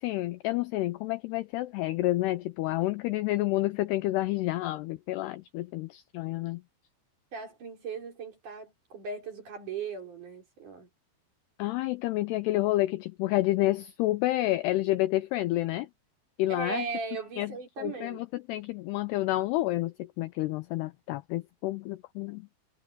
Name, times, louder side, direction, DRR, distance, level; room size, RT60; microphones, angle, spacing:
voice 1, 0.0-6.6 11.6-15.9 16.4-16.9 17.4-22.5, left 17 dB, 80° left, 2.4 m, -29 dB
voice 2, 7.3-10.9 16.5-18.2, right 5 dB, 45° right, 5.7 m, -38 dB
omnidirectional pair, 5.4 m